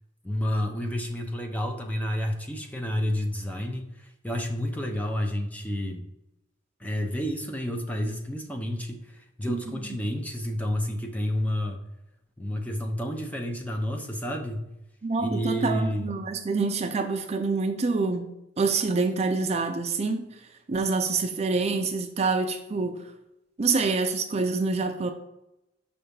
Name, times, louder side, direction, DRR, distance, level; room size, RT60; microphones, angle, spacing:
voice 1, 0.2-6.1 6.8-11.8 12.4-14.8 15.2-16.1, equal, 10° left, 0.6 m, -30 dB
voice 2, 15.0-20.3 20.7-23.0 23.6-25.1, right 4 dB, 35° right, 0.4 m, -26 dB
5.5 x 3.5 x 5.4 m
head